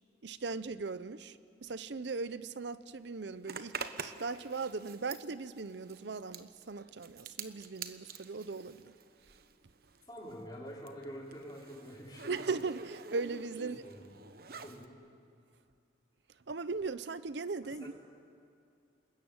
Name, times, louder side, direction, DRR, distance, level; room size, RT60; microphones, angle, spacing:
voice 1, 0.2-8.9 12.3-13.8 16.5-17.9, right 4 dB, 70° right, 15 dB, 0.7 m, -38 dB
Zipper (clothing), 3.4-9.6 9.9-14.9, right 5 dB, 55° right, 1.2 m, -47 dB
voice 2, 10.1-12.4 13.6-14.1 14.6-14.9 17.6-17.9, equal, 20° left, -3 dB, 5.1 m, -47 dB
29.5 x 20.5 x 8.9 m, 2.4 s
head